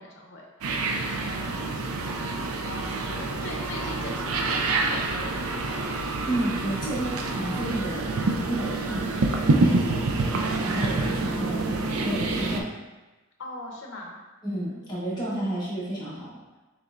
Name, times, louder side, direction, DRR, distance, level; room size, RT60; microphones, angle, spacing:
voice 1, 0.0-5.8 13.4-14.2 15.1-15.4, left 2 dB, 55° left, 0 dB, 0.8 m, -42 dB
sound 1, 0.6-12.6, right 3 dB, 75° right, 0.5 m, -27 dB
voice 2, 6.3-10.3 10.6-12.7 14.4-16.4, right 1 dB, 20° left, -8 dB, 1.3 m, -32 dB
6.5 x 3.2 x 2.5 m, 1.1 s
head